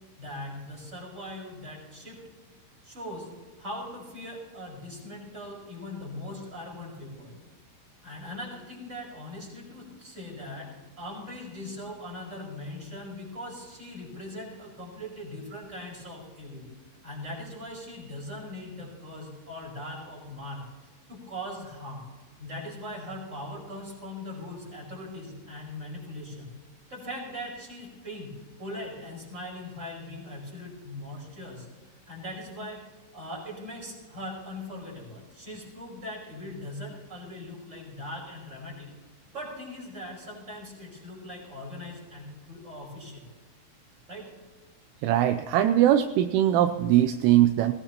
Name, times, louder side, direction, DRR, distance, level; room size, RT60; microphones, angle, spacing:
voice 1, 0.2-2.2 2.8-3.3 3.6-7.4 8.0-16.7 17.0-22.1 22.4-26.5 26.9-32.8 33.1-38.9 39.3-43.2 44.1-44.3, left 1 dB, 15° right, -3 dB, 5.0 m, -40 dB
voice 2, 45.0-47.7, right 12 dB, 85° right, 9 dB, 3.0 m, -21 dB
21.0 x 17.5 x 2.9 m, 1.3 s
omnidirectional pair, 5.8 m